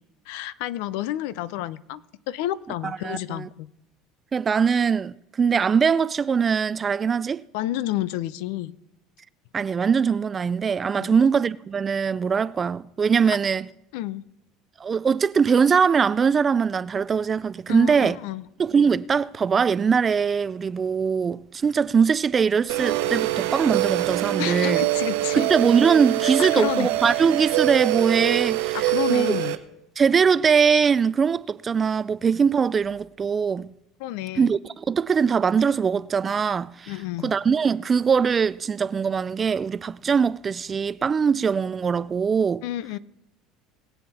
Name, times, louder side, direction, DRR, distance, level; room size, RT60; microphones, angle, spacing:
voice 1, 0.3-3.7 7.5-8.7 11.0-11.2 13.3-13.4 13.9-14.2 17.7-18.4 24.4-25.5 26.2-26.9 28.7-29.6 34.0-34.5 36.9-37.4 42.6-43.0, left 14 dB, 80° left, 0.6 m, -30 dB
voice 2, 2.8-3.5 4.3-7.4 9.5-13.7 14.8-18.2 18.6-24.9 25.3-29.4 30.0-33.7 34.4-36.9 37.2-42.6, right 6 dB, 25° right, 0.3 m, -22 dB
sound 1, 22.7-29.6, right 16 dB, 90° right, 0.9 m, -24 dB
20.5 x 8.0 x 4.2 m
cardioid pair, 135°, 0 cm